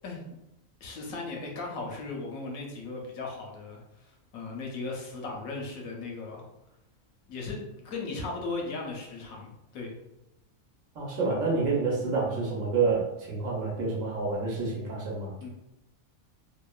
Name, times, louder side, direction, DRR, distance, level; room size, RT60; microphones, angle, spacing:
voice 1, 0.8-6.5 7.3-7.6 7.8-9.9 11.3-11.4 15.4-15.5, left 3 dB, 80° left, 0 dB, 1.0 m, -37 dB
voice 2, 10.9-15.3, right 4 dB, 70° right, -3 dB, 1.1 m, -28 dB
2.8 x 2.1 x 2.2 m, 0.89 s
omnidirectional pair, 1.5 m